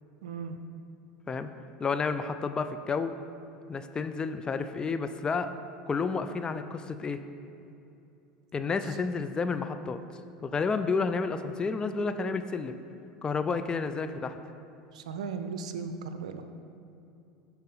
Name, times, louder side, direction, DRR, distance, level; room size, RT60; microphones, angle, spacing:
voice 1, 0.2-0.6 8.8-9.0 14.9-16.4, right 5 dB, 80° right, 8 dB, 0.5 m, -37 dB
voice 2, 1.8-3.1 3.7-5.5 5.9-7.2 8.5-10.0 10.4-12.7 13.2-14.4, left 4 dB, 25° left, 9 dB, 0.4 m, -30 dB
12.0 x 4.2 x 3.9 m, 2.7 s
hypercardioid pair, 90°, 4 cm